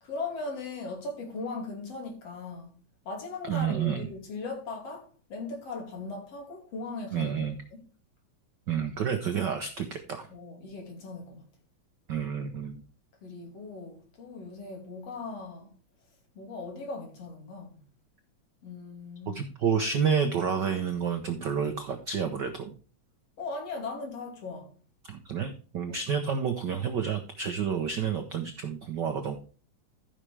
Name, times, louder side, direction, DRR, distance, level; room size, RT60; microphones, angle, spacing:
voice 1, 0.0-2.7 3.1-7.5 10.3-11.5 13.2-15.7 16.4-17.9 18.6-19.4 23.4-24.7, left 3 dB, 55° left, 3.8 m, -38 dB
voice 2, 3.4-4.1 7.1-7.6 8.7-10.3 12.1-12.8 19.3-22.7 25.0-29.4, right 7 dB, 85° right, 0.9 m, -29 dB
14.5 x 6.5 x 3.3 m
omnidirectional pair, 3.3 m